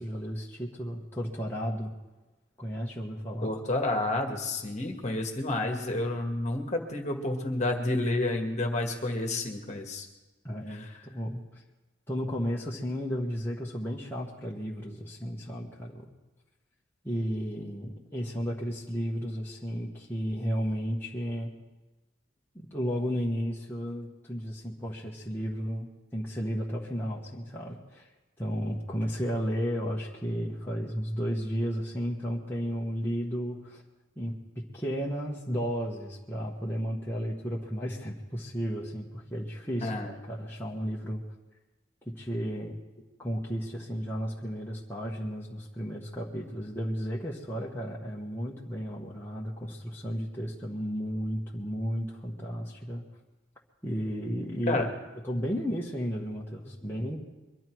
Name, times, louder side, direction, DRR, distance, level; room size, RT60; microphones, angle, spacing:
voice 1, 0.0-1.9 2.6-3.5 10.4-11.4 12.1-16.1 17.0-21.5 22.5-28.0 28.4-33.8 34.2-41.2 42.0-42.8 43.2-53.0 53.8-54.9 55.2-57.2, equal, 10° left, -4 dB, 1.4 m, -33 dB
voice 2, 3.4-10.1 10.7-10.8 39.8-40.1 54.7-54.9 55.4-55.5, left 2 dB, 35° left, 2 dB, 1.7 m, -30 dB
23.0 x 12.0 x 4.6 m, 1.1 s
head